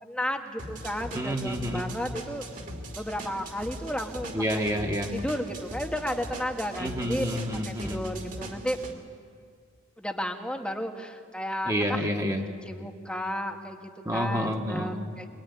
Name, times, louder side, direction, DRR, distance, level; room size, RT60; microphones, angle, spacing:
voice 1, 0.0-2.4 2.9-4.6 5.1-7.3 7.6-8.8 10.0-12.1 12.6-15.3, equal, 5° left, 3 dB, 1.6 m, -33 dB
sound 1, 0.6-8.9, right 1 dB, 40° right, 3.0 m, -40 dB
voice 2, 1.1-1.9 4.3-5.1 6.8-8.0 11.6-12.4 14.1-14.9, equal, 15° right, 0 dB, 1.9 m, -29 dB
24.5 x 22.5 x 9.7 m, 2.1 s
head